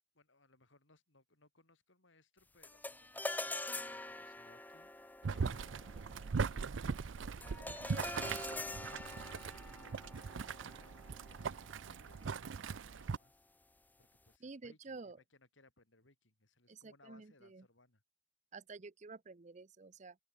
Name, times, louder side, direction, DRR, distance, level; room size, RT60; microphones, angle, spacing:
voice 1, 0.1-4.9 5.2-13.5 14.0-18.0, left 2 dB, 85° left, 5.2 m, -67 dB
sound 1, 2.6-12.1, left 2 dB, 10° left, 0.7 m, -45 dB
Boiling, 5.2-13.2, right 5 dB, 85° right, 0.5 m, -40 dB
voice 2, 14.4-15.2 16.7-17.6 18.5-20.2, right 3 dB, 40° right, 0.7 m, -50 dB
open air
head